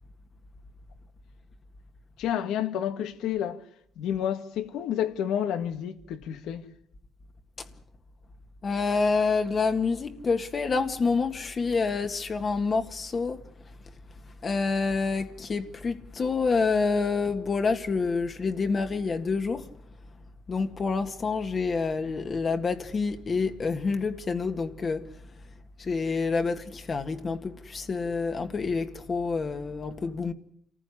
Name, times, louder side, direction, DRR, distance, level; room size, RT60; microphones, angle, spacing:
voice 1, 2.2-3.6 4.0-6.6, left 10 dB, 90° left, 1.8 m, -30 dB
voice 2, 8.6-13.4 14.4-19.7 20.5-25.0 25.8-30.3, left 4 dB, 40° left, 1.8 m, -27 dB
26.5 x 15.0 x 9.9 m
cardioid pair, 90°, 0 cm